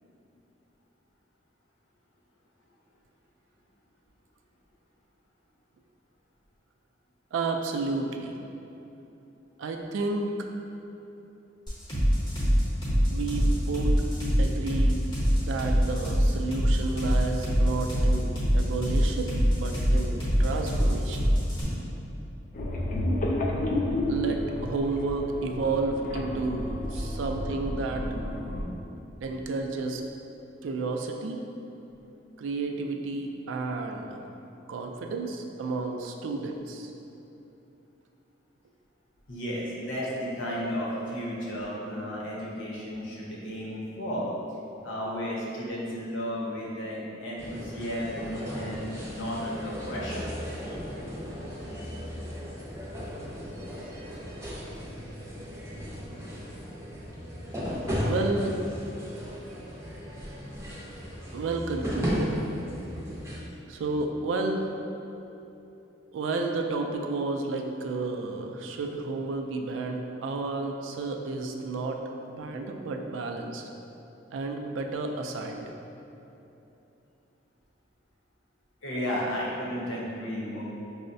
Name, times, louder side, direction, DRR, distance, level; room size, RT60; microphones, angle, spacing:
voice 1, 7.3-8.3 9.6-10.3 13.1-14.0 14.4-15.0 15.4-21.3 24.1-28.0 29.2-30.0 30.6-31.4 32.4-34.2 34.7-36.9 58.0-58.6 61.3-62.4 63.7-64.7 66.1-72.0 72.3-73.7 74.3-75.8, right 3 dB, 75° right, 3 dB, 0.3 m, -31 dB
sound 1, 11.7-21.6, equal, 25° left, 0.8 m, -24 dB
sound 2, 22.5-28.6, left 1 dB, 40° left, 0.3 m, -31 dB
voice 2, 39.3-44.3 44.8-50.3 78.8-80.6, equal, 80° left, -5 dB, 0.8 m, -33 dB
sound 3, 47.4-63.4, equal, 15° right, 0.5 m, -35 dB
5.4 x 2.1 x 2.6 m, 2.9 s
head